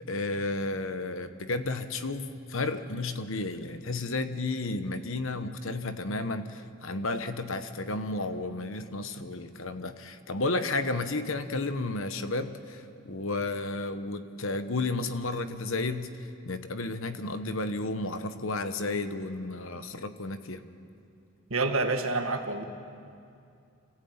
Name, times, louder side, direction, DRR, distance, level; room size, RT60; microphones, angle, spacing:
voice 1, 0.1-16.1 16.4-20.6, left 2 dB, 65° left, 9 dB, 1.1 m, -32 dB
voice 2, 21.5-22.6, right 3 dB, 65° right, 6 dB, 1.7 m, -28 dB
27.0 x 15.5 x 8.8 m, 2.5 s
head